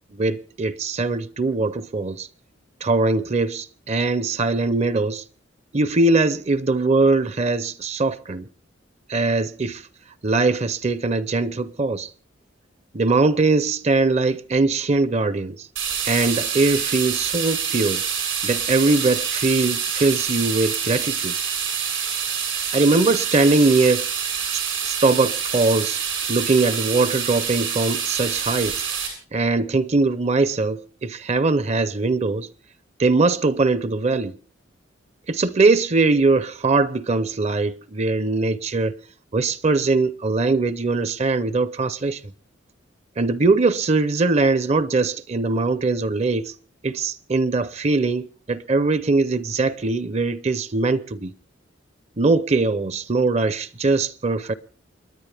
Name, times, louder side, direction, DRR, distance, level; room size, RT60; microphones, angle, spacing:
voice 1, 0.1-2.3 2.8-5.2 5.7-8.5 9.1-9.8 10.2-12.1 12.9-15.6 16.0-18.0 18.4-21.4 22.7-24.1 24.5-26.0 26.3-28.8 29.3-32.5 33.0-34.4 35.3-38.9 39.3-42.2 43.2-46.5 46.8-51.3 52.2-54.5, right 3 dB, 35° right, 0.6 m, -21 dB
sound 1, 15.8-29.1, right 7 dB, 85° right, 7.5 m, -26 dB
29.0 x 10.0 x 3.4 m
head